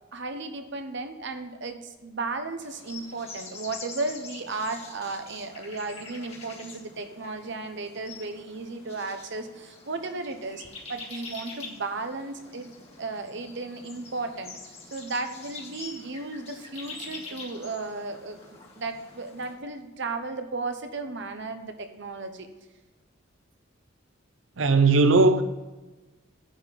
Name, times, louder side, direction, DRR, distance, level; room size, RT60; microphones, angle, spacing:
voice 1, 0.1-10.6 10.9-12.7 13.0-22.5, right 3 dB, 65° right, 1.0 m, -35 dB
sound 1, 2.6-19.5, left 3 dB, 30° left, 2.1 m, -45 dB
voice 2, 24.6-25.4, right 3 dB, 85° right, 0.7 m, -18 dB
10.0 x 4.4 x 7.3 m
head